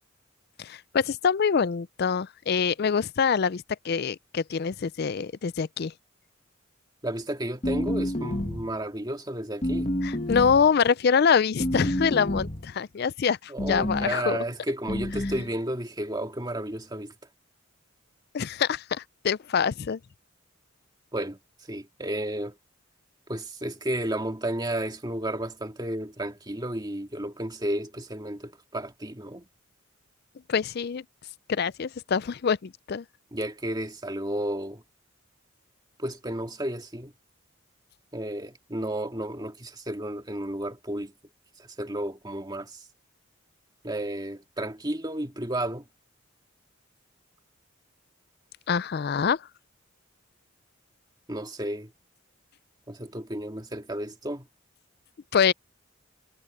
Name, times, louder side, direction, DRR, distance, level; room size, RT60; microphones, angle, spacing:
voice 1, 0.6-5.9 10.0-14.4 18.3-18.8 19.2-20.0 30.5-31.0 31.5-33.0 48.7-49.4 55.3-55.5, left 6 dB, 50° left, 0.4 m, -25 dB
voice 2, 7.0-9.9 13.5-17.1 21.1-21.4 21.7-22.6 23.3-29.4 33.3-34.8 36.0-37.1 38.1-41.1 41.6-42.8 43.8-45.9 51.3-51.9 52.9-54.5, right 1 dB, 20° right, 2.1 m, -32 dB
sound 1, 7.6-8.8 9.6-10.7 11.6-12.7 13.6-14.1 14.9-15.5, left 1 dB, 30° left, 1.5 m, -29 dB
head